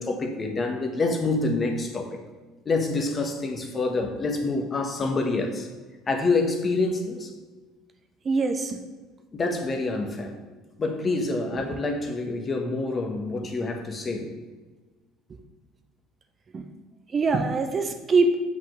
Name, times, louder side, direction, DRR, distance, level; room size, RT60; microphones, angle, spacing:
voice 1, 0.0-2.2 2.6-5.7 6.1-7.3 9.3-10.4 10.8-14.3, left 3 dB, 30° left, 4 dB, 1.4 m, -27 dB
voice 2, 8.2-8.8 11.5-11.8 16.5-16.7 17.1-18.4, right 3 dB, 35° right, 7 dB, 0.8 m, -24 dB
5.8 x 5.7 x 6.5 m, 1.3 s
hypercardioid pair, 70°, 0 cm